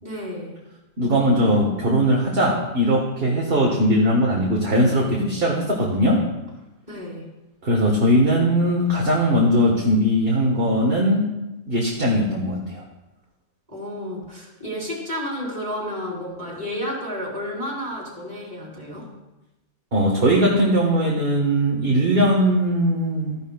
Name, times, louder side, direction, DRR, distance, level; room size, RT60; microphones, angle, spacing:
voice 1, 0.0-0.6 6.9-7.2 13.7-19.1, equal, 25° right, -3 dB, 3.3 m, -31 dB
voice 2, 1.0-6.2 7.6-11.2 11.7-12.8 19.9-23.4, equal, 40° right, -2 dB, 1.6 m, -20 dB
14.5 x 11.5 x 2.3 m, 1.0 s
omnidirectional pair, 1.6 m